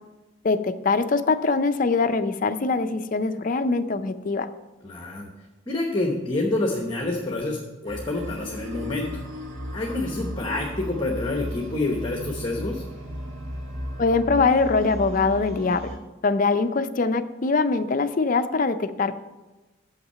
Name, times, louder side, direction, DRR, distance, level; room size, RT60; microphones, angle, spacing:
voice 1, 0.4-4.5 14.0-16.0 16.2-19.3, left 4 dB, 40° left, 10 dB, 0.4 m, -23 dB
voice 2, 4.8-5.3 5.7-9.1 9.7-12.8, left 2 dB, 25° left, 0 dB, 0.9 m, -27 dB
sound 1, 7.8-16.0, equal, 70° right, 1.7 m, -35 dB
7.2 x 5.9 x 6.7 m, 1.1 s
head